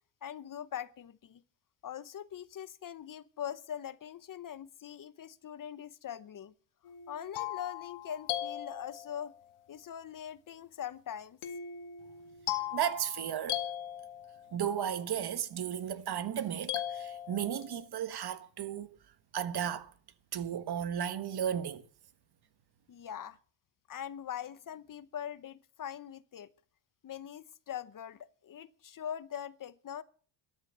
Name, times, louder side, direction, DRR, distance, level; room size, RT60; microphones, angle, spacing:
voice 1, 0.2-1.4 1.8-6.5 7.1-9.3 9.7-11.4 22.9-23.4 23.9-26.5 27.0-30.0, left 9 dB, 40° left, 0.8 m, -42 dB
sound 1, 6.8-9.4 11.4-14.6 16.7-17.9, left 12 dB, 80° left, 1.9 m, -38 dB
voice 2, 12.7-13.6 14.5-19.0 19.3-19.9 20.3-21.8, right 9 dB, 50° right, 1.3 m, -34 dB
13.5 x 11.0 x 6.7 m
cardioid pair, 120°, 49 cm